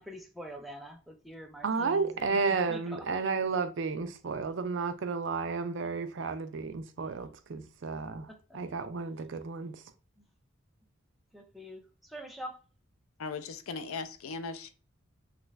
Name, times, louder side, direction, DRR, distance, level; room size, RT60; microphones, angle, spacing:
voice 1, 0.0-2.4 2.7-3.0 8.3-8.6 10.2-10.3 11.3-12.6, equal, ahead, 0.4 m, -45 dB
voice 2, 1.6-9.8, right 4 dB, 60° right, 0.4 m, -32 dB
voice 3, 13.2-14.7, left 4 dB, 85° left, 0.5 m, -38 dB
3.0 x 2.4 x 3.2 m
head